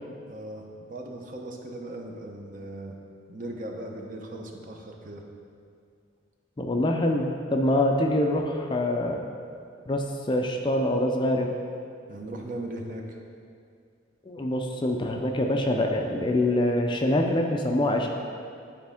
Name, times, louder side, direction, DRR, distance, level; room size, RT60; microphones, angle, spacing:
voice 1, 0.3-3.0 3.3-5.2 12.1-13.2, right 1 dB, 40° right, 1 dB, 0.7 m, -38 dB
voice 2, 6.6-9.2 9.9-11.5 14.2-18.1, left 1 dB, 25° left, 2 dB, 0.4 m, -25 dB
10.5 x 4.3 x 3.5 m, 2.3 s
head